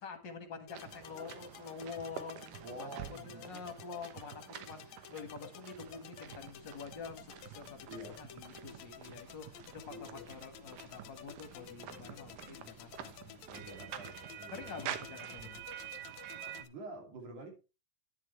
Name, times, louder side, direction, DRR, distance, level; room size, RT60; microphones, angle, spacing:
voice 1, 0.0-13.6 14.5-15.6, left 5 dB, 40° left, 1.9 m, -47 dB
sound 1, 0.7-16.7, left 10 dB, 70° left, 1.9 m, -53 dB
sound 2, 0.7-16.6, right 10 dB, 90° right, 2.7 m, -48 dB
voice 2, 2.6-3.6 7.9-8.2 9.9-10.2 13.5-14.8 16.5-17.5, right 2 dB, 65° right, 4.2 m, -48 dB
sound 3, 6.2-14.3, left 1 dB, 35° right, 2.6 m, -63 dB
10.5 x 10.5 x 3.2 m
omnidirectional pair, 3.8 m